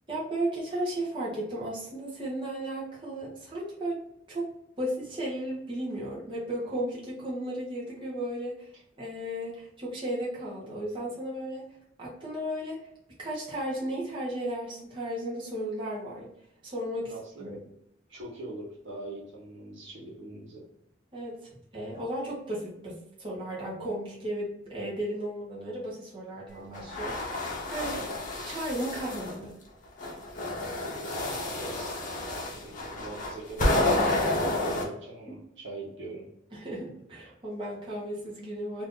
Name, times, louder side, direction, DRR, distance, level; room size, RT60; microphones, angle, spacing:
voice 1, 0.1-4.0 4.3-4.5 4.8-8.7 9.0-11.6 12.0-12.8 13.2-16.3 16.6-17.1 17.4-17.6 21.1-28.0 28.5-29.6 36.5-38.8, right 1 dB, 25° right, -6 dB, 0.9 m, -34 dB
voice 2, 17.1-17.5 18.1-20.7 27.8-28.2 30.8-32.0 32.5-36.2, right 2 dB, 75° right, -3 dB, 1.0 m, -42 dB
sound 1, 26.7-29.3 30.0-34.8, left 2 dB, 45° left, 0.7 m, -30 dB
2.6 x 2.5 x 3.6 m, 0.77 s
head